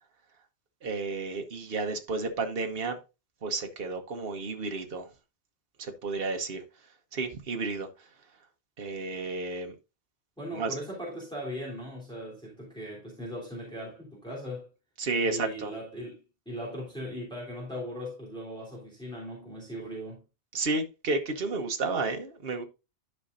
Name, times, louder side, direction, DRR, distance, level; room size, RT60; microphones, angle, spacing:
voice 1, 0.8-3.0 3.4-5.1 5.8-6.6 7.1-8.1 8.8-9.7 10.5-10.8 15.0-15.7 20.5-22.6, right 3 dB, 55° right, 1.3 m, -32 dB
voice 2, 10.4-14.7 15.2-20.2, equal, 5° left, 3.3 m, -39 dB
12.0 x 5.5 x 2.5 m
omnidirectional pair, 1.2 m